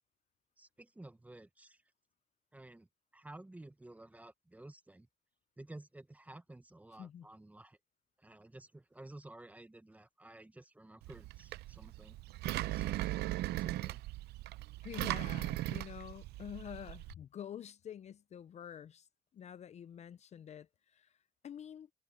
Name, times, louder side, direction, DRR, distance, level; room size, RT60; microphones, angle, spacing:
voice 1, 0.6-1.8 2.5-2.9 3.1-5.1 5.6-7.8 8.2-12.2 12.6-13.2 13.4-14.0, right 1 dB, 10° right, 0.9 m, -53 dB
Engine, 11.0-17.1, right 16 dB, 75° right, 0.6 m, -38 dB
voice 2, 14.8-19.1 19.3-21.9, left 9 dB, 40° left, 0.6 m, -48 dB
cardioid pair, 110°, 17 cm